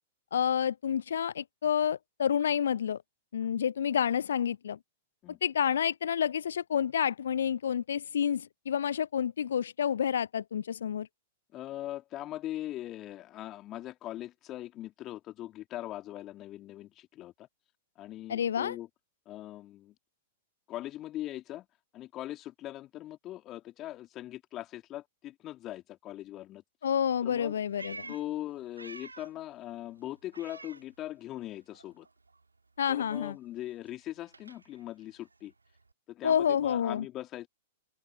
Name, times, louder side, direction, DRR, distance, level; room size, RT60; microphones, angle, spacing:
voice 1, 0.3-3.0 3.3-4.8 5.4-11.1 18.3-18.8 26.8-28.1 32.8-33.3 36.2-37.1, left 8 dB, 70° left, 0.4 m, -29 dB
voice 2, 11.5-17.5 18.0-18.9 19.3-19.9 20.7-21.7 21.9-26.6 27.2-27.5 28.1-32.1 32.9-35.5 36.1-37.5, left 14 dB, 30° left, 2.1 m, -40 dB
Meow, 27.3-29.5 29.8-31.5 31.7-35.9, right 3 dB, 85° right, 2.1 m, -51 dB
open air
figure-of-eight pair, 105°, 0 cm